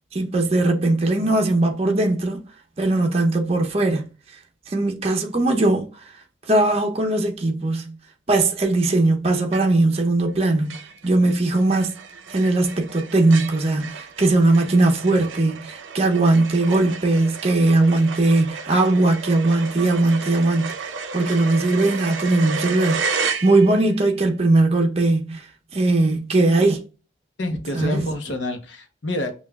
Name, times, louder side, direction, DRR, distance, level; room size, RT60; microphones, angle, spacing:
voice 1, 0.1-2.4 2.8-4.0 4.7-5.9 6.5-8.0 8.3-12.0 12.3-23.0 23.4-25.5 25.7-26.8 27.7-28.0, right 2 dB, 30° right, 0.6 m, -19 dB
sound 1, 9.5-10.0 10.3-10.4 10.7-24.0, right 5 dB, 80° right, 0.5 m, -32 dB
voice 2, 27.4-29.3, left 1 dB, 70° left, 0.8 m, -27 dB
5.6 x 2.3 x 2.2 m
head